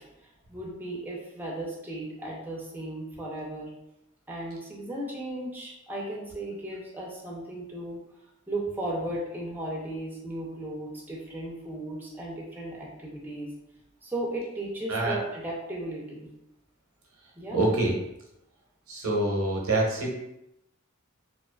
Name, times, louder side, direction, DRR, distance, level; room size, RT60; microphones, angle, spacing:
voice 1, 0.0-3.7 4.3-8.0 8.5-13.5 14.0-16.3 17.4-17.6, right 1 dB, 10° right, -4 dB, 0.4 m, -36 dB
voice 2, 17.5-17.9 18.9-20.1, right 2 dB, 85° right, -2 dB, 0.6 m, -25 dB
2.4 x 2.4 x 2.2 m, 0.86 s
head